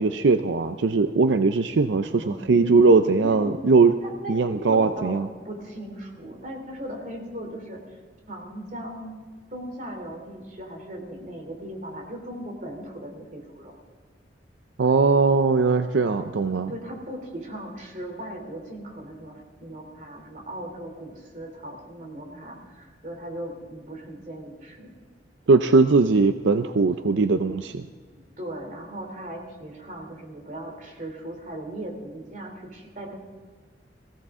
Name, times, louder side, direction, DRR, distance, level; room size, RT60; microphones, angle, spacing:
voice 1, 0.0-3.9 4.3-5.3 14.8-16.7 25.5-27.8, right 4 dB, 85° right, 9 dB, 0.5 m, -20 dB
voice 2, 2.0-2.8 3.2-3.6 4.0-5.2 5.4-7.8 8.3-9.2 9.5-13.7 16.0-16.3 16.7-24.9 28.4-33.2, right 1 dB, 45° right, 2 dB, 3.0 m, -38 dB
19.0 x 16.0 x 3.6 m, 1.5 s
head